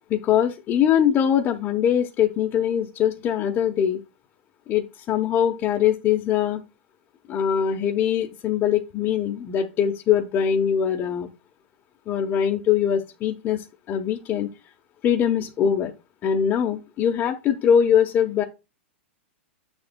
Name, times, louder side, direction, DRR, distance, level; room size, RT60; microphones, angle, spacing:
voice 1, 0.1-4.0 4.7-6.6 7.3-11.3 12.1-14.5 15.0-15.9 16.2-18.4, left 8 dB, 30° left, 0 dB, 0.9 m, -22 dB
8.8 x 7.0 x 2.2 m, 0.27 s
hypercardioid pair, 130°, 7 cm